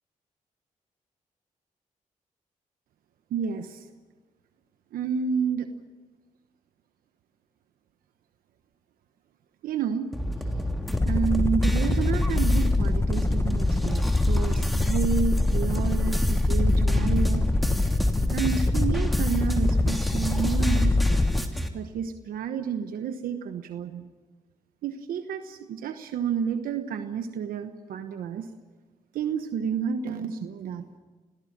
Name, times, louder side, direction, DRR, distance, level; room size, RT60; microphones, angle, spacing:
voice 1, 3.3-3.8 4.9-5.7 9.6-10.1 11.0-17.4 18.3-21.2 21.7-24.1 24.8-28.5 29.1-30.8, right 7 dB, 85° right, 8 dB, 1.1 m, -30 dB
sound 1, 10.1-21.7, equal, ahead, 3.0 m, -32 dB
sound 2, 10.8-21.5, left 2 dB, 20° left, 1.1 m, -24 dB
26.0 x 17.5 x 7.4 m, 1.3 s
supercardioid pair, 55°, 15 cm